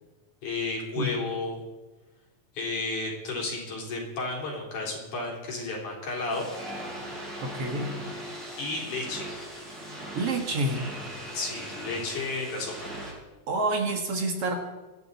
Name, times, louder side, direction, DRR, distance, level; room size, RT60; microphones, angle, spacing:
voice 1, 0.4-1.6 2.5-6.5 8.6-9.3 11.3-12.9, left 3 dB, 75° left, -3 dB, 5.4 m, -32 dB
sound 1, 6.3-13.1, right 1 dB, 30° right, 6.4 m, -39 dB
voice 2, 7.4-8.0 10.1-10.8 13.5-14.6, right 2 dB, 55° right, 3 dB, 2.3 m, -28 dB
25.5 x 11.0 x 4.2 m, 1.2 s
omnidirectional pair, 3.6 m